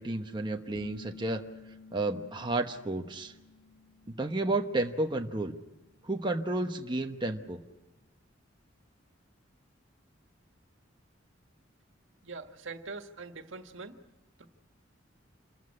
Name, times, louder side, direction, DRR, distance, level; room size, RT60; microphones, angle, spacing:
voice 1, 0.0-1.4 1.9-3.3 4.1-5.6 6.0-7.6, right 2 dB, 25° right, 3 dB, 1.1 m, -31 dB
sound 1, 0.8-6.2, left 3 dB, 55° left, 3.1 m, -54 dB
voice 2, 12.2-14.0 14.4-14.5, right 4 dB, 85° right, 6 dB, 1.7 m, -43 dB
28.0 x 14.5 x 9.8 m, 1.0 s
head